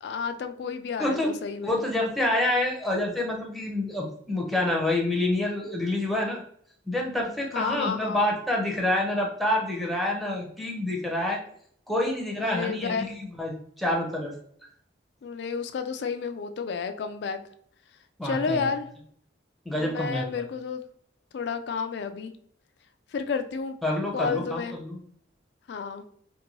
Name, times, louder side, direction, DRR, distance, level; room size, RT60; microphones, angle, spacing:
voice 1, 0.0-1.8 7.5-8.2 12.4-13.1 15.2-17.4 18.2-18.9 19.8-20.8 21.3-22.3 23.1-23.8 24.1-24.8 25.7-26.1, left 5 dB, 60° left, 9 dB, 0.3 m, -31 dB
voice 2, 1.0-1.3 1.6-6.4 6.9-11.4 11.9-14.3 18.2-18.6 19.6-20.4 23.8-25.0, left 1 dB, ahead, -1 dB, 0.6 m, -27 dB
2.6 x 2.6 x 3.0 m, 0.63 s
head